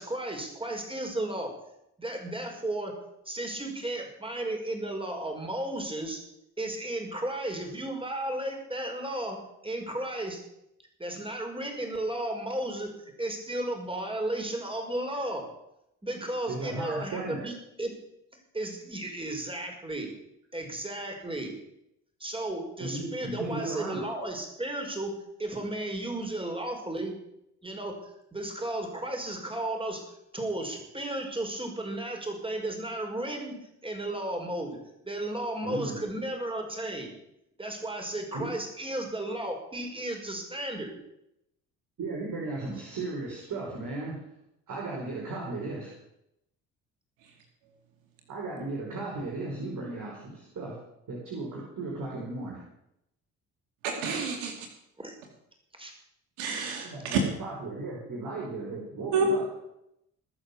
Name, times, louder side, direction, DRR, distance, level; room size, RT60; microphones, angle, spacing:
voice 1, 0.0-1.5 2.0-3.0 3.3-6.2 6.6-9.4 9.6-10.4 11.0-12.9 13.2-15.4 16.0-17.9 18.5-20.1 20.5-21.5 22.2-25.1 25.4-27.1 27.6-30.0 30.3-33.6 33.8-34.8 35.1-37.1 37.6-41.0 55.0-55.2 55.8-55.9, right 1 dB, 15° right, 3 dB, 5.4 m, -34 dB
voice 2, 16.5-17.5 22.8-24.0 35.6-36.0 38.3-38.5 42.0-44.2 44.7-45.9 48.3-50.8 51.1-52.6 56.8-59.5, right 2 dB, 55° right, -4 dB, 5.2 m, -35 dB
voice 3, 53.8-54.5 56.4-57.2 59.1-59.3, right 6 dB, 85° right, 3 dB, 2.5 m, -28 dB
21.0 x 7.0 x 7.2 m, 0.83 s
hypercardioid pair, 55°, 38 cm